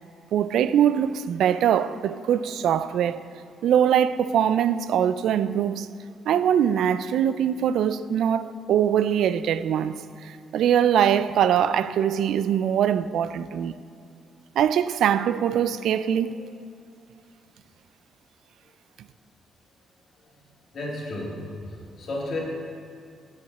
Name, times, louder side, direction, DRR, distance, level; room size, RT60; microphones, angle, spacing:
voice 1, 0.3-3.2 3.6-5.9 6.3-10.0 10.2-13.7 14.6-16.5, right 9 dB, 75° right, 0.3 m, -22 dB
voice 2, 20.7-21.4 21.7-22.4, left 2 dB, 55° left, 2.3 m, -32 dB
8.0 x 5.7 x 7.3 m
cardioid pair, 90°, 0 cm